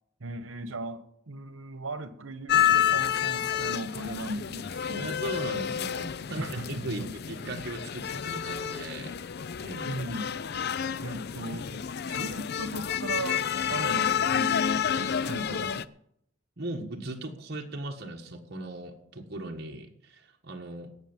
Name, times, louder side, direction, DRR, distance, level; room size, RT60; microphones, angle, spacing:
voice 1, 0.2-5.1 6.3-7.1 9.8-10.3 11.0-15.9, right 1 dB, 90° right, 11 dB, 1.2 m, -37 dB
sound 1, 2.5-15.8, left 9 dB, 55° left, 0.5 m, -29 dB
voice 2, 5.0-9.2 9.6-10.0 16.6-20.9, right 2 dB, 55° right, 1 dB, 1.6 m, -38 dB
17.5 x 6.5 x 7.3 m, 0.73 s
head